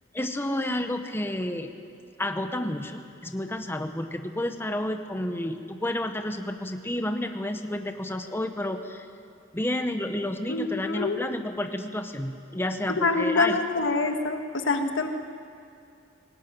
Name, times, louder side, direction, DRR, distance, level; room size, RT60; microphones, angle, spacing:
voice 1, 0.1-1.7 2.2-9.1 9.5-13.6, left 1 dB, 10° left, 6 dB, 1.0 m, -30 dB
voice 2, 10.5-11.2 13.0-15.1, left 3 dB, 90° left, 5 dB, 1.7 m, -25 dB
18.5 x 18.0 x 9.3 m, 2.4 s
head